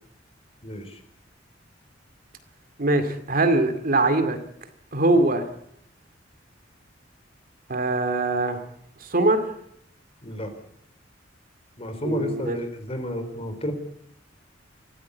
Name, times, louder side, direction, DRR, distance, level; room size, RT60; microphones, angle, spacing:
voice 1, 0.6-1.0 10.2-10.5 11.8-13.7, equal, 30° left, 7 dB, 4.2 m, -31 dB
voice 2, 2.8-4.4 4.9-5.4 7.7-8.6 9.0-9.5 12.0-12.6, right 2 dB, 50° right, 8 dB, 2.3 m, -22 dB
24.5 x 15.5 x 8.4 m, 0.72 s
head